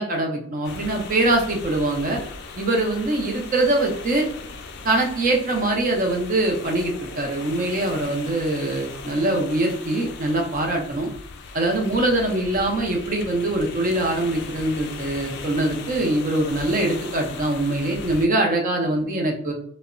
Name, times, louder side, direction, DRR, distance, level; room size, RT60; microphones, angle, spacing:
voice 1, 0.0-2.2 2.6-4.3 4.8-11.1 11.5-19.5, right 2 dB, 40° right, 1 dB, 0.5 m, -23 dB
sound 1, 0.6-18.3, left 4 dB, 50° left, 0.3 m, -38 dB
2.8 x 2.0 x 2.4 m, 0.66 s
head